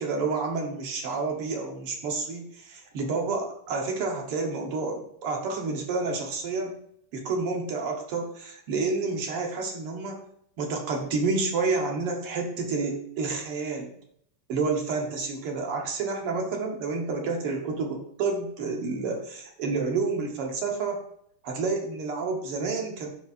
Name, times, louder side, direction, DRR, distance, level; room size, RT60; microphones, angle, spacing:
voice 1, 0.0-6.8 7.1-10.2 10.6-13.9 14.5-21.0 21.4-23.1, right 4 dB, 90° right, 1 dB, 2.3 m, -29 dB
13.0 x 4.6 x 2.6 m, 0.71 s
omnidirectional pair, 2.4 m